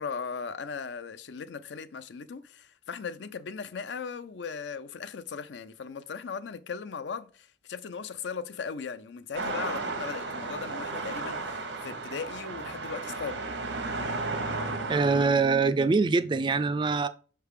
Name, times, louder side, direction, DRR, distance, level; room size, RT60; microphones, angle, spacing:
voice 1, 0.0-13.4, left 5 dB, 80° left, 0.5 m, -38 dB
sound 1, 9.3-15.3, right 3 dB, 85° right, 1.0 m, -34 dB
voice 2, 14.9-17.1, right 4 dB, 25° right, 0.3 m, -24 dB
5.7 x 3.4 x 4.8 m
head